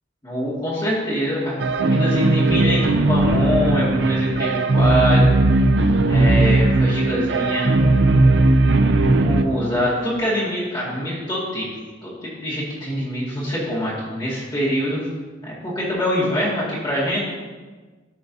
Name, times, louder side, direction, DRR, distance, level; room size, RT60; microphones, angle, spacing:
voice 1, 0.2-5.3 6.1-7.7 9.2-11.7 12.0-15.0 15.4-17.3, equal, 25° left, -9 dB, 2.2 m, -24 dB
sound 1, 1.6-9.4, right 2 dB, 65° right, 0.5 m, -17 dB
13.0 x 5.0 x 2.8 m, 1.3 s
head